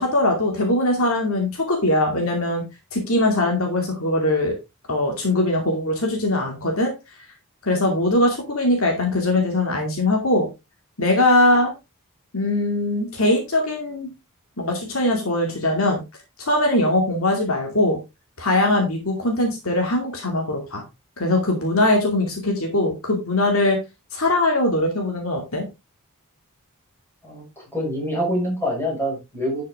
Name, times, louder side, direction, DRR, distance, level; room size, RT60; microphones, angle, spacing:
voice 1, 0.0-2.6 2.9-4.5 4.9-6.9 7.6-10.5 11.0-11.7 12.3-14.1 14.6-16.0 16.4-18.0 18.4-20.8 21.2-23.8 24.1-25.6, left 1 dB, 65° left, 2 dB, 2.6 m, -21 dB
voice 2, 27.2-29.6, equal, 10° left, -3 dB, 5.8 m, -26 dB
11.0 x 6.5 x 3.6 m, 0.25 s
head